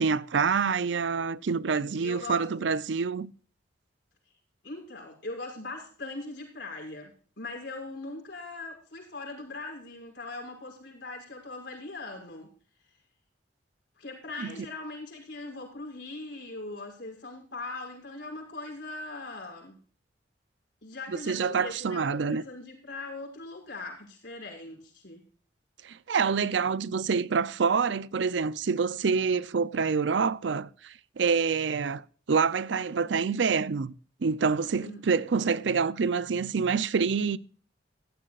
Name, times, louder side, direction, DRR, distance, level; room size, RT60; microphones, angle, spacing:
voice 1, 0.0-3.3 14.4-14.5 21.1-22.4 25.8-33.9 34.2-37.4, right 5 dB, 80° right, 0.5 m, -27 dB
voice 2, 1.8-2.5 4.6-12.5 14.0-19.8 20.8-25.2 34.8-35.0, left 2 dB, 70° left, 6.0 m, -40 dB
15.5 x 13.0 x 2.4 m
head